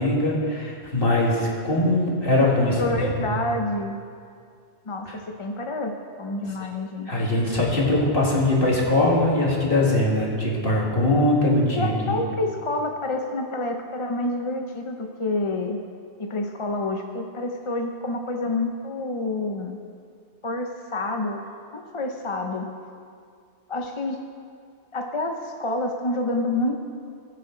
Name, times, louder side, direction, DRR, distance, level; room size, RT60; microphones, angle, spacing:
voice 1, 0.0-3.4 5.1-5.2 7.1-12.2, left 1 dB, 55° left, -3 dB, 2.3 m, -22 dB
voice 2, 2.3-4.0 4.9-5.9 6.2-7.1 11.7-15.8 16.2-19.8 20.4-22.7 23.7-24.2 24.9-26.8, left 2 dB, 30° left, 3 dB, 0.7 m, -28 dB
21.0 x 7.6 x 3.9 m, 2.2 s
omnidirectional pair, 1.2 m